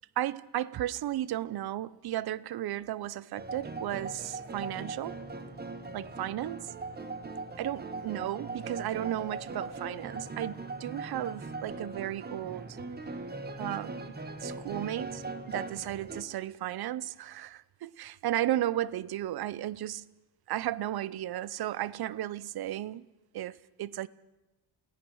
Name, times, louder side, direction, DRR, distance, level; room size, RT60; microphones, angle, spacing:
voice 1, 0.2-5.2 5.9-6.7 7.6-12.8 13.6-14.1 14.4-20.1 20.5-23.0 23.3-24.1, right 13 dB, 60° right, 0.7 m, -34 dB
sound 1, 3.3-16.2, right 3 dB, 20° right, 1.3 m, -40 dB
28.5 x 17.5 x 6.3 m
wide cardioid pair, 170°, 43 cm